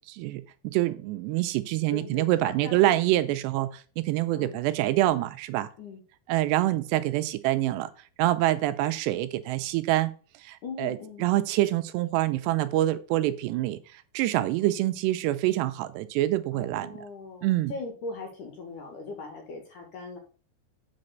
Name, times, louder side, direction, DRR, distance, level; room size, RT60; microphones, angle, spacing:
voice 1, 0.1-5.7 6.3-7.9 8.2-10.1 10.4-17.0 17.4-17.7, right 15 dB, 80° right, 2.6 m, -26 dB
voice 2, 1.9-3.0 4.3-4.7 5.8-6.0 10.6-11.3 14.4-14.8 16.5-20.2, left 3 dB, 60° left, 2.3 m, -40 dB
8.6 x 4.9 x 6.6 m
omnidirectional pair, 5.1 m